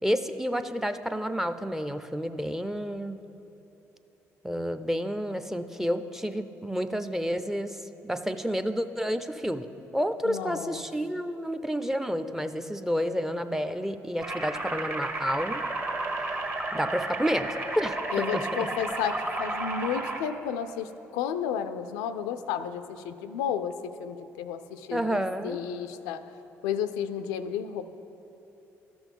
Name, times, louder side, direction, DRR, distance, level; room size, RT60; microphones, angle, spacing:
voice 1, 0.0-3.2 4.4-9.7 9.9-15.6 16.7-18.4 24.9-25.6, equal, 5° right, 10 dB, 0.6 m, -30 dB
voice 2, 10.3-10.8 18.1-26.2 26.6-27.8, left 8 dB, 85° left, 10 dB, 0.4 m, -32 dB
sound 1, 14.2-20.2, right 2 dB, 30° right, 1.3 m, -32 dB
12.5 x 6.1 x 5.4 m, 3.0 s
hypercardioid pair, 55°, 7 cm